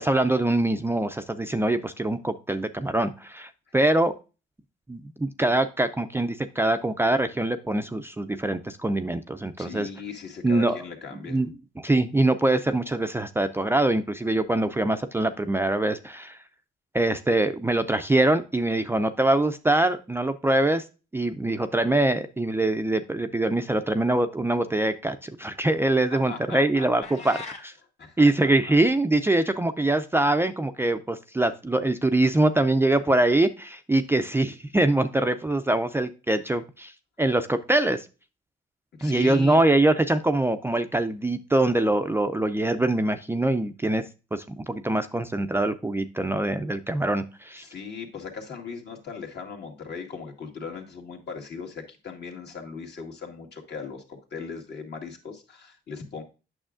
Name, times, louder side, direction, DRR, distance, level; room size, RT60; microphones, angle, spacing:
voice 1, 0.0-4.1 4.9-9.9 10.4-10.8 11.3-16.4 16.9-20.8 21.1-27.7 28.2-36.9 37.2-38.1 39.0-44.0 44.3-47.6, right 2 dB, 10° right, 8 dB, 0.4 m, -24 dB
voice 2, 9.6-11.4 26.1-27.3 28.0-28.8 39.0-39.6 47.6-56.2, left 5 dB, 60° left, 3 dB, 1.9 m, -38 dB
sound 1, 27.0-27.7, left 4 dB, 35° left, 1.4 m, -39 dB
8.8 x 6.2 x 2.5 m, 0.31 s
cardioid pair, 90°, 20 cm